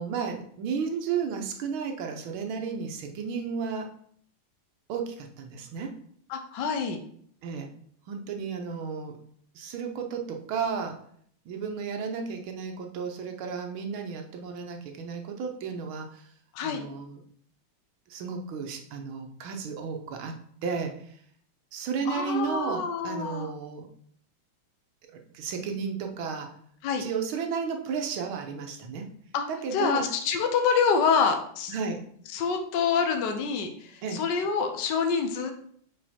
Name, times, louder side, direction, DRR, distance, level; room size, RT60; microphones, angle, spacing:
voice 1, 0.0-3.9 4.9-6.0 7.4-7.7 8.1-9.2 9.6-11.0 11.5-16.3 16.6-17.2 18.1-20.3 20.6-21.2 21.7-23.9 25.1-26.5 27.0-29.1 29.5-30.1 31.7-32.0 34.0-34.2, right 6 dB, 90° right, 4 dB, 1.8 m, -33 dB
voice 2, 6.3-7.0 16.5-16.8 22.1-23.5 26.8-27.0 29.3-29.5 29.7-31.7 32.3-35.5, left 5 dB, 65° left, 5 dB, 1.4 m, -26 dB
5.4 x 5.4 x 4.3 m, 0.62 s
omnidirectional pair, 2.2 m